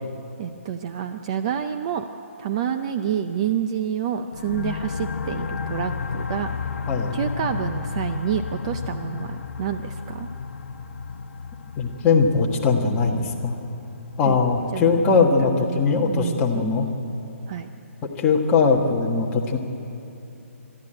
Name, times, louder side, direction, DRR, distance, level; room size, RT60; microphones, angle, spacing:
voice 1, 0.4-2.1 2.4-6.5 7.1-10.3 14.2-14.4 14.7-16.7 17.5-17.7, right 8 dB, 25° right, 7 dB, 0.5 m, -28 dB
sound 1, 4.3-15.7, left 5 dB, 75° left, 0.9 m, -33 dB
voice 2, 11.8-13.5 14.2-16.9 18.2-19.6, left 4 dB, 15° left, 0 dB, 1.4 m, -20 dB
26.5 x 12.5 x 8.8 m, 2.9 s
hypercardioid pair, 170°, 8 cm